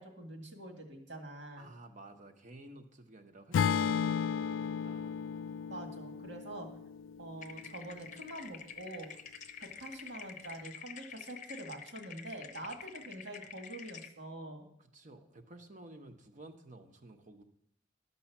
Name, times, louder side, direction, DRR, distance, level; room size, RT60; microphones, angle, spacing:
voice 1, 0.0-1.7 5.7-6.7 7.2-9.1 9.6-14.7, right 1 dB, 75° right, 3 dB, 2.0 m, -45 dB
voice 2, 1.6-5.2 12.6-12.7 14.8-17.4, right 2 dB, 40° right, 6 dB, 1.0 m, -53 dB
Acoustic guitar / Strum, 3.5-7.8, left 7 dB, 85° left, 0.3 m, -34 dB
sound 1, 7.4-14.1, left 7 dB, 40° left, 0.7 m, -48 dB
12.5 x 5.5 x 7.1 m, 0.74 s
head